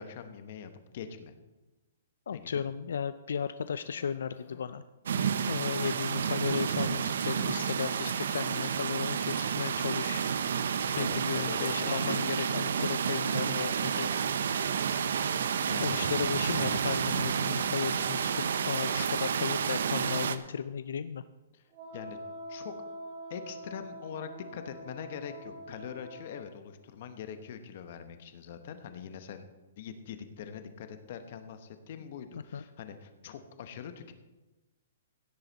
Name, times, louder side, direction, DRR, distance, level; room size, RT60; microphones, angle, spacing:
voice 1, 0.0-1.3 2.3-2.6 10.9-12.9 15.7-16.3 21.5-21.6 21.9-22.2 22.5-22.7 23.3-29.5 29.8-34.1, left 7 dB, 40° left, 9 dB, 1.0 m, -43 dB
voice 2, 2.3-4.8 5.5-10.2 10.9-14.1 15.8-21.2 32.5-32.6, left 7 dB, 75° left, 13 dB, 0.4 m, -35 dB
Cough, 3.6-4.8 5.1-5.8 6.8-7.2 7.4-7.7 8.1-8.3 8.9-9.3 10.8-11.6 12.2-12.6 13.1-14.9 15.6-15.7 16.3-18.1 18.7-19.2, left 4 dB, 60° left, 2.5 m, -55 dB
sound 1, 5.1-20.4, right 7 dB, 65° right, 0.6 m, -30 dB
Wind instrument woodwind instrument, 21.7-26.5, equal, 25° right, 2.9 m, -45 dB
16.5 x 7.8 x 4.1 m, 1.1 s
hypercardioid pair, 170°, 0 cm